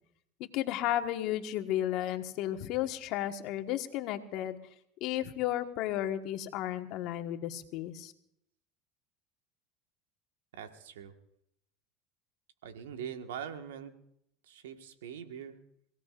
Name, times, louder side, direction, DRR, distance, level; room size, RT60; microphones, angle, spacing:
voice 1, 0.5-4.6 5.0-8.1, left 12 dB, 60° left, 6 dB, 1.5 m, -33 dB
voice 2, 10.5-11.1 12.6-13.9 14.4-15.5, right 8 dB, 85° right, 6 dB, 1.6 m, -42 dB
28.5 x 17.0 x 2.5 m, 0.72 s
hypercardioid pair, 95°, 0 cm